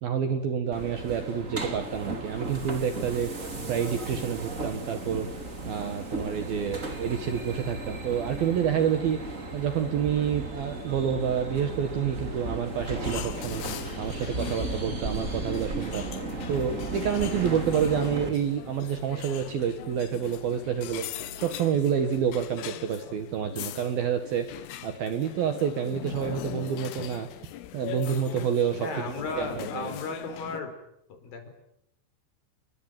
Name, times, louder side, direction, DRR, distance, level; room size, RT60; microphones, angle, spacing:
voice 1, 0.0-5.3 5.7-13.6 14.0-16.1 16.5-21.0 21.4-24.5 24.8-27.3 27.7-28.9 29.4-29.9, right 8 dB, 60° right, 8 dB, 2.8 m, -28 dB
sound 1, 0.7-18.3, right 2 dB, 20° right, 2.4 m, -35 dB
sound 2, 7.1-24.1, right 6 dB, 40° right, 4.6 m, -50 dB
sound 3, 12.8-30.6, left 12 dB, 75° left, 4.0 m, -41 dB
voice 2, 28.8-30.7 31.2-31.5, left 3 dB, 45° left, 7 dB, 5.4 m, -35 dB
29.0 x 22.0 x 9.2 m, 0.78 s
omnidirectional pair, 5.9 m